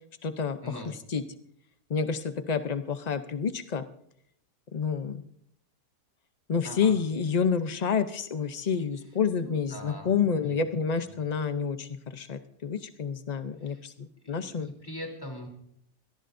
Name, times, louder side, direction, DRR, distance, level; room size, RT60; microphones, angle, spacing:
voice 1, 0.2-1.2 1.9-3.8 4.7-5.2 6.5-14.7, left 6 dB, 90° left, 9 dB, 0.3 m, -29 dB
voice 2, 6.6-6.9 9.4-10.2 10.4-10.6 13.6-13.8 14.2-15.5, left 1 dB, 15° left, 1 dB, 3.3 m, -42 dB
24.0 x 18.0 x 2.6 m, 0.70 s
omnidirectional pair, 1.8 m